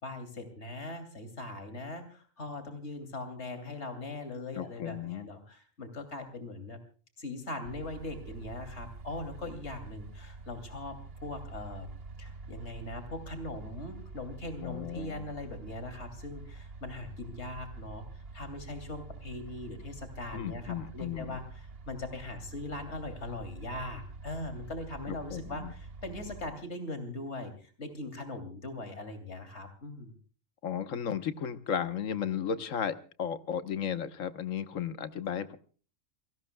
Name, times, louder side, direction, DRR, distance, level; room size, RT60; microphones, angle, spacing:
voice 1, 0.0-6.8 7.2-11.9 12.2-30.1, left 2 dB, 60° left, 8 dB, 3.1 m, -40 dB
voice 2, 4.5-5.3 14.6-15.3 20.3-21.3 25.1-25.7 30.6-35.6, left 8 dB, 90° left, 11 dB, 1.5 m, -34 dB
sound 1, 7.6-26.5, right 3 dB, 50° right, 1.3 m, -46 dB
28.5 x 18.5 x 2.3 m, 0.39 s
omnidirectional pair, 1.3 m